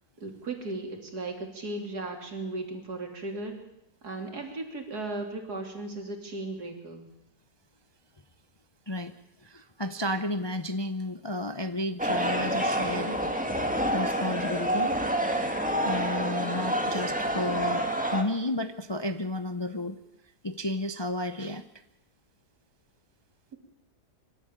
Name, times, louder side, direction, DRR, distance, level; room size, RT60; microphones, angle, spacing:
voice 1, 0.2-3.6 4.0-7.1, right 2 dB, 80° right, 3 dB, 3.7 m, -36 dB
voice 2, 9.4-13.2 13.9-15.0 15.8-20.0 20.4-21.7, left 1 dB, 25° left, 9 dB, 0.6 m, -32 dB
sound 1, 12.0-18.2, right 1 dB, 5° right, 2.1 m, -28 dB
25.0 x 12.5 x 9.0 m, 0.89 s
omnidirectional pair, 1.7 m